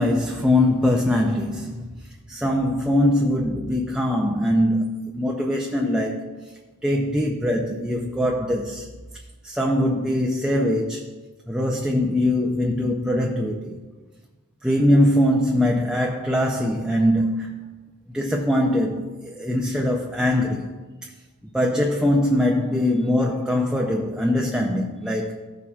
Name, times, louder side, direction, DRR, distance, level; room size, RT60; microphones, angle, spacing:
voice 1, 0.0-1.9 2.3-6.5 6.8-8.9 9.4-11.1 11.5-13.8 14.6-17.7 18.1-20.8 21.4-25.4, left 1 dB, 5° right, 0.5 m, -22 dB
14.5 x 6.8 x 2.4 m
head